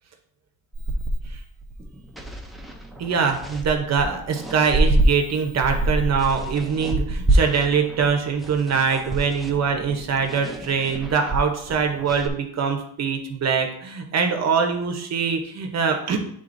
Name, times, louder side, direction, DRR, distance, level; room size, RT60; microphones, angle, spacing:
sound 1, 0.7-5.1 5.5-12.3, right 1 dB, ahead, 0.4 m, -27 dB
voice 1, 3.0-16.2, right 6 dB, 45° right, 5 dB, 0.7 m, -23 dB
10.0 x 3.8 x 2.5 m, 0.69 s
cardioid pair, 175°, 39 cm